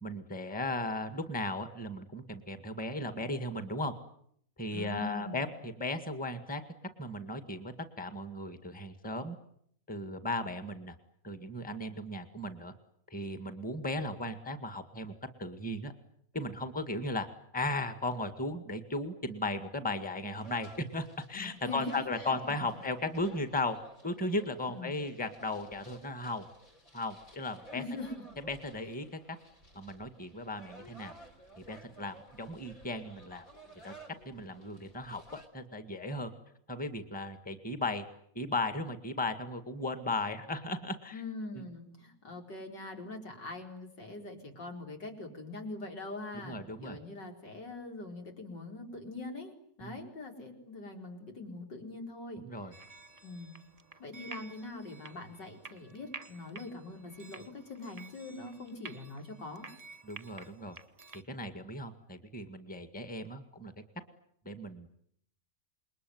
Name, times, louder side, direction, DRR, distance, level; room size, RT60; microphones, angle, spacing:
voice 1, 0.0-3.9 4.6-6.6 7.0-9.4 9.9-11.0 11.2-12.7 13.1-15.9 16.3-17.3 17.5-23.8 24.0-26.5 26.9-27.8 28.4-29.2 29.7-31.2 31.6-33.5 33.8-33.9 34.3-36.3 36.7-38.1 38.4-41.2 41.5-41.6 46.4-47.0 49.8-50.0 52.4-52.7 60.0-60.8 61.3-63.7 64.5-64.9, left 2 dB, 5° left, 9 dB, 1.8 m, -36 dB
voice 2, 4.7-5.5 21.3-21.9 22.3-22.4 24.7-25.0 27.7-28.1 41.1-52.7 53.2-53.5 54.0-59.7, left 2 dB, 75° left, 3 dB, 5.1 m, -43 dB
sound 1, 20.4-35.5, right 1 dB, 50° left, 4.0 m, -55 dB
sound 2, 52.7-61.2, right 3 dB, 25° right, 1.3 m, -51 dB
28.0 x 22.0 x 9.5 m, 0.69 s
omnidirectional pair, 1.9 m